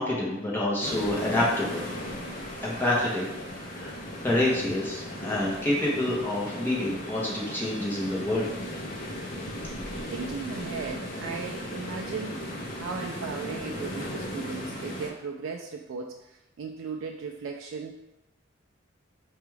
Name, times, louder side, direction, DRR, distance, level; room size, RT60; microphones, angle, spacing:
voice 1, 0.0-1.9 2.6-3.3 3.6-3.9 4.2-8.5, left 1 dB, 10° left, -5 dB, 0.9 m, -27 dB
sound 1, 0.8-15.1, equal, 45° left, 0.6 m, -36 dB
voice 2, 10.1-12.4 12.8-17.9, right 5 dB, 65° right, 2 dB, 0.3 m, -37 dB
4.8 x 2.3 x 3.2 m, 0.96 s
head